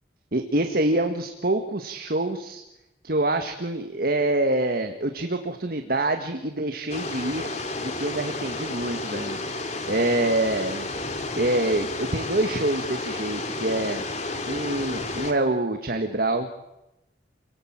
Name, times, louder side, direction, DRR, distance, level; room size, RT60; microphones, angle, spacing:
voice 1, 0.3-2.6 3.0-7.5 7.8-9.4 9.8-10.9 11.4-14.0 14.5-16.5, right 2 dB, 55° right, 6 dB, 1.7 m, -26 dB
sound 1, 6.9-15.3, left 2 dB, 40° left, 2.8 m, -31 dB
28.5 x 18.5 x 8.9 m, 0.94 s
head